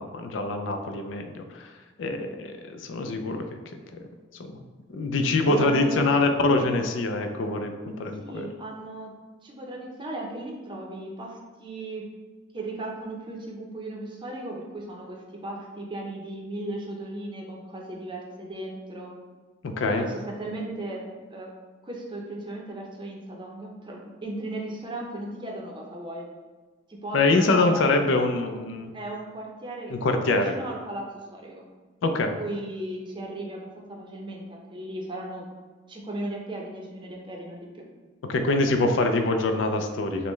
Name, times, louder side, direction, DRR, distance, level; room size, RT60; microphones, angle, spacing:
voice 1, 0.0-1.7 2.0-3.6 4.5-4.6 4.9-8.5 19.6-20.0 27.1-28.9 29.9-30.5 32.0-32.3 38.3-40.3, left 2 dB, 75° left, 5 dB, 0.4 m, -24 dB
voice 2, 5.4-6.2 8.2-9.1 9.4-12.1 12.5-19.1 19.9-21.0 21.3-21.5 21.8-26.3 26.9-27.9 28.9-31.6 32.4-35.5 35.9-37.8, right 2 dB, 25° right, -1 dB, 0.6 m, -36 dB
5.2 x 2.1 x 3.1 m, 1.4 s
head